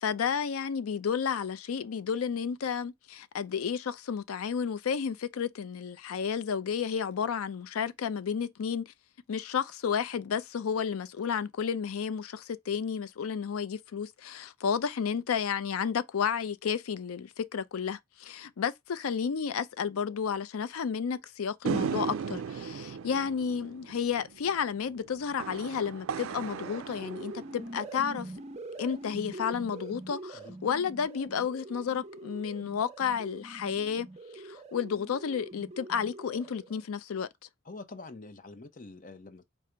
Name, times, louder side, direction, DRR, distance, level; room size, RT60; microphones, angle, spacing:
voice 1, 0.0-8.9 9.3-28.3 28.8-34.1 34.3-37.3, left 7 dB, 90° left, 0.4 m, -32 dB
sound 1, 21.7-28.2, right 6 dB, 75° right, 0.3 m, -37 dB
sound 2, 26.3-36.8, right 2 dB, 30° right, 0.6 m, -44 dB
voice 2, 37.6-39.4, left 3 dB, 40° left, 0.6 m, -46 dB
5.0 x 2.0 x 4.4 m
head